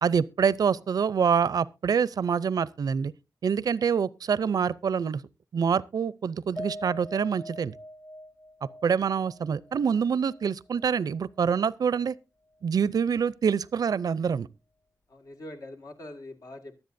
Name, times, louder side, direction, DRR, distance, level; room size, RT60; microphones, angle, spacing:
voice 1, 0.0-3.1 3.4-5.2 5.5-7.8 8.8-12.1 12.6-14.5, right 6 dB, 75° right, 0.5 m, -26 dB
Piano, 6.5-11.0 11.4-11.5 11.9-12.1, equal, 55° left, 3.2 m, -43 dB
voice 2, 15.1-16.8, left 1 dB, 70° left, 1.9 m, -43 dB
23.0 x 8.0 x 2.6 m
wide cardioid pair, 120°, 7 cm